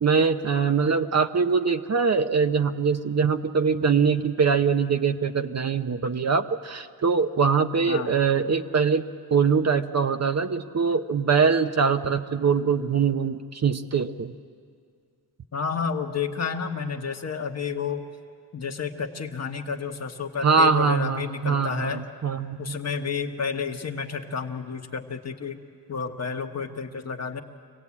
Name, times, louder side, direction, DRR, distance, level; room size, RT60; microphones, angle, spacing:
voice 1, 0.0-14.3 20.4-22.7, right 5 dB, 40° right, 8 dB, 0.7 m, -23 dB
voice 2, 15.5-18.0 18.5-22.0 22.6-25.6 25.9-27.4, left 5 dB, 40° left, 5 dB, 1.3 m, -30 dB
26.0 x 17.5 x 8.5 m, 2.3 s
wide cardioid pair, 105°, 41 cm